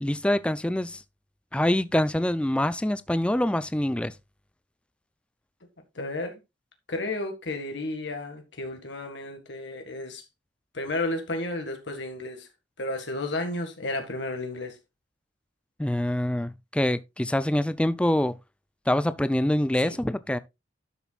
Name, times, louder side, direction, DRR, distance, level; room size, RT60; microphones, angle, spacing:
voice 1, 0.0-1.0 1.5-4.1 15.8-18.4 18.9-20.4, left 1 dB, 5° left, 0.4 m, -25 dB
voice 2, 6.0-6.4 6.9-10.3 10.7-12.5 12.8-14.8 19.8-20.0, left 2 dB, 65° left, 1.9 m, -32 dB
12.0 x 7.1 x 2.4 m
head